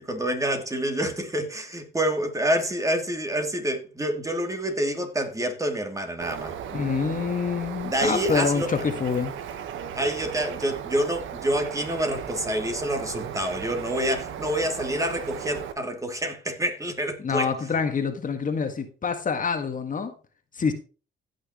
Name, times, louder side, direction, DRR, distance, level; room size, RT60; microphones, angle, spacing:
voice 1, 0.1-6.5 7.8-8.7 9.9-17.5, right 1 dB, 15° right, 2.7 m, -27 dB
Bird, 6.2-15.7, right 8 dB, 80° right, 1.4 m, -36 dB
voice 2, 6.7-9.3 17.2-20.1 20.5-20.7, left 5 dB, 40° left, 1.8 m, -26 dB
16.0 x 6.4 x 3.1 m
cardioid pair, 90°, 20 cm